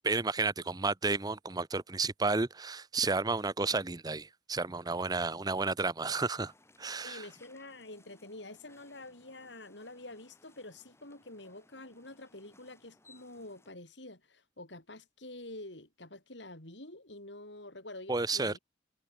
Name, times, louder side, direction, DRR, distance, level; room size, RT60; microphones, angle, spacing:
voice 1, 0.0-6.5 6.8-7.3 18.1-18.6, right 3 dB, 20° right, 0.8 m, -32 dB
sound 1, 6.4-13.7, left 2 dB, 15° left, 4.7 m, -63 dB
voice 2, 7.0-18.6, left 2 dB, 70° left, 6.1 m, -47 dB
head